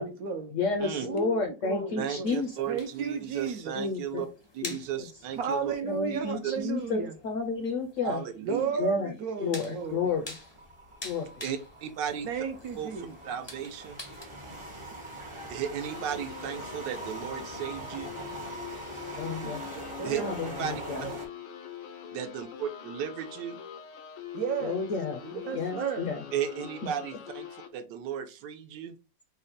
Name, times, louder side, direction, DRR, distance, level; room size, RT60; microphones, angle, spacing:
voice 1, 0.0-0.6 1.0-2.4 2.7-3.7 5.4-7.2 8.4-10.1 12.2-13.1 19.4-20.4 21.0-21.1 24.3-24.9 25.2-26.1, right 6 dB, 70° right, 0.9 m, -34 dB
voice 2, 0.5-2.5 3.7-4.3 4.6-4.7 5.8-8.2 8.8-9.1 9.4-10.2 11.0-11.3 19.2-19.6 20.2-21.0 24.6-25.2 25.5-26.2, left 4 dB, 70° left, 0.7 m, -31 dB
voice 3, 2.0-4.3 4.5-5.8 6.1-6.7 8.0-8.8 11.4-12.3 12.8-14.0 15.5-18.1 20.0-20.2 20.6-20.7 22.1-23.6 26.3-29.0, right 9 dB, 85° right, 1.3 m, -35 dB
sound 1, 2.2-14.3, left 2 dB, 40° left, 0.4 m, -48 dB
sound 2, 9.8-21.3, right 2 dB, 35° right, 0.4 m, -43 dB
sound 3, 15.8-27.7, left 9 dB, 85° left, 1.3 m, -43 dB
4.1 x 2.2 x 3.8 m
omnidirectional pair, 1.9 m